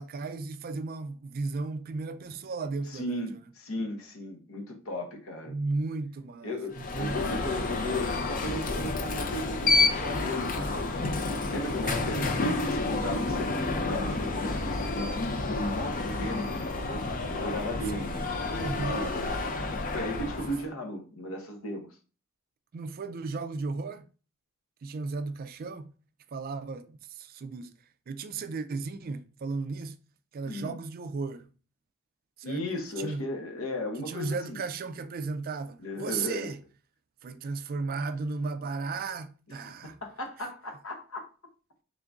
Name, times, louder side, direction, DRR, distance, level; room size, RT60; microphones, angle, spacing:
voice 1, 0.0-3.3 5.5-7.2 11.9-12.3 17.9-19.1 22.7-24.0 24.8-25.9 26.3-27.7 28.1-30.0 30.3-31.5 32.4-32.6 33.0-33.2 34.1-36.6 37.2-40.0, right 3 dB, 45° right, 0.3 m, -35 dB
voice 2, 2.9-5.5 6.4-10.9 11.5-12.3 12.7-18.4 18.7-19.4 19.9-21.9 30.5-30.8 32.4-34.6 35.8-36.5 39.5-41.2, left 1 dB, 65° left, 0.8 m, -36 dB
Alarm, 6.7-20.7, left 3 dB, 40° left, 0.5 m, -30 dB
3.6 x 2.5 x 3.5 m
head